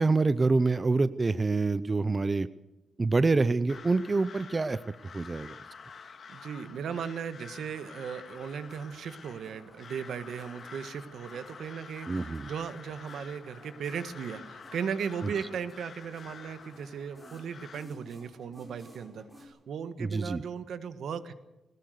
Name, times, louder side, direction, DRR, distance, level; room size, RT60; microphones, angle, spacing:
voice 1, 0.0-2.5 3.0-4.8 5.1-5.6 12.1-12.5 15.2-15.3 20.0-20.4, right 3 dB, 25° right, 15 dB, 0.7 m, -26 dB
Crow, 3.7-17.9, left 5 dB, 50° left, 2.0 m, -49 dB
voice 2, 6.3-21.3, right 7 dB, 75° right, 11 dB, 1.6 m, -37 dB
sound 1, 8.3-19.5, equal, 5° right, 6.2 m, -56 dB
21.0 x 19.5 x 6.7 m, 0.97 s
wide cardioid pair, 125°, 0 cm